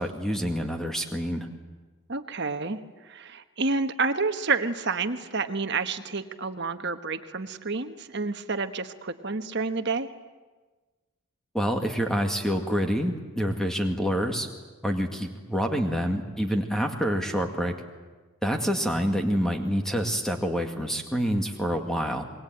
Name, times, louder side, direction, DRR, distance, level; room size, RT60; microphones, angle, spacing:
voice 1, 0.0-1.5 11.5-14.5 14.8-17.7 18.4-22.2, equal, ahead, 4 dB, 2.1 m, -27 dB
voice 2, 2.1-2.8 3.1-10.1, right 4 dB, 50° right, 8 dB, 1.3 m, -29 dB
26.5 x 22.5 x 9.1 m, 1.3 s
head